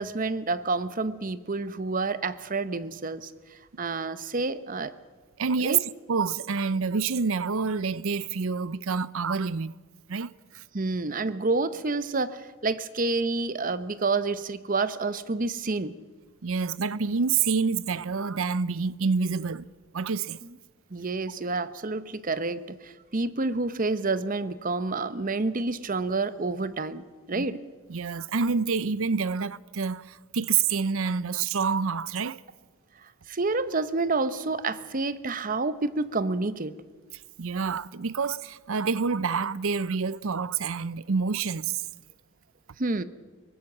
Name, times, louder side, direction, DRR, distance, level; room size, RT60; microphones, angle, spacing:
voice 1, 0.0-4.9 5.6-5.8 10.7-16.0 20.9-27.6 33.0-36.8 42.8-43.0, right 3 dB, 40° right, 0.8 m, -29 dB
voice 2, 5.4-5.8 6.1-9.7 10.1-10.6 16.4-19.7 19.9-20.4 27.3-27.5 27.9-32.4 37.4-41.9, right 5 dB, 70° right, 0.6 m, -27 dB
22.5 x 18.5 x 7.4 m
head